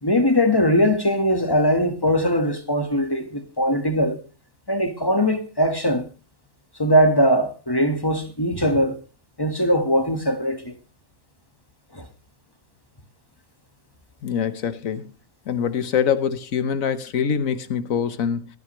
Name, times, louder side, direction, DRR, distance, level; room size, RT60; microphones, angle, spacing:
voice 1, 0.0-4.2 4.7-6.0 6.8-9.0 9.4-10.7 11.9-12.1, equal, 15° left, 1.4 m, -20 dB
voice 2, 14.2-15.1 15.5-18.5, left 7 dB, 70° left, 1.4 m, -24 dB
16.5 x 12.5 x 3.1 m
omnidirectional pair, 1.5 m